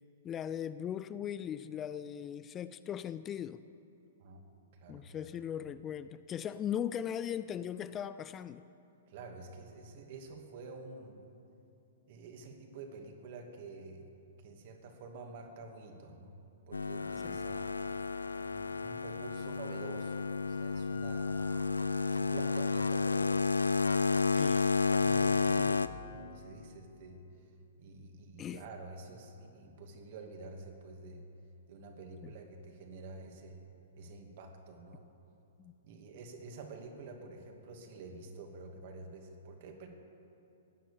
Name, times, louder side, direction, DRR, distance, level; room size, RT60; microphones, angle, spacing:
voice 1, 0.2-3.6 4.9-8.6 17.2-17.4 24.3-24.7 28.4-28.6 32.2-32.3 35.6-35.7, left 9 dB, 25° left, 14 dB, 0.4 m, -39 dB
voice 2, 4.8-5.4 9.1-11.2 12.1-14.0 14.4-16.3 16.7-17.8 18.3-21.5 22.1-24.0 25.0-27.2 27.8-31.2 31.7-33.6 34.0-35.0 35.8-39.9, right 3 dB, 50° right, 3 dB, 2.5 m, -48 dB
sound 1, 16.7-25.9, left 4 dB, 85° left, 0.5 m, -31 dB
sound 2, 16.9-25.0, left 7 dB, 55° left, 4.8 m, -56 dB
17.0 x 10.5 x 7.0 m, 2.7 s
figure-of-eight pair, 115°, 0 cm